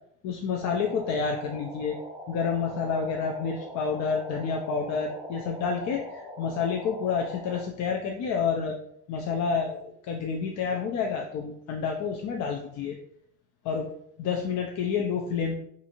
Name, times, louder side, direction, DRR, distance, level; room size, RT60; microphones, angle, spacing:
voice 1, 0.2-2.0 2.3-8.8 9.1-13.0 13.6-13.9 14.2-15.6, left 6 dB, 65° left, 1 dB, 0.4 m, -29 dB
sound 1, 0.6-7.7, equal, 10° right, 0.5 m, -42 dB
2.5 x 2.5 x 2.8 m, 0.72 s
supercardioid pair, 75°, 30 cm